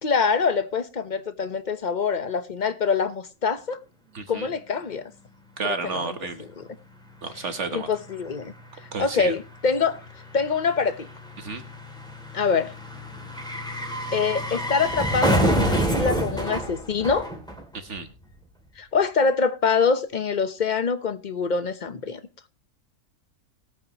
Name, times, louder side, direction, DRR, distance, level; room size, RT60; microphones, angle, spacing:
voice 1, 0.0-3.8 4.3-5.0 5.6-6.7 7.3-8.5 9.0-10.0 10.3-11.1 12.3-12.7 14.1-17.3 18.8-22.2, left 5 dB, 35° left, 1.0 m, -25 dB
voice 2, 4.1-4.5 5.6-6.4 7.2-7.9 8.9-9.3 11.4-11.6 17.7-18.1, right 4 dB, 50° right, 1.4 m, -31 dB
sound 1, 7.3-7.4 7.6-18.0 18.2-18.3, right 1 dB, 5° left, 2.7 m, -28 dB
20.0 x 8.7 x 3.0 m
omnidirectional pair, 1.6 m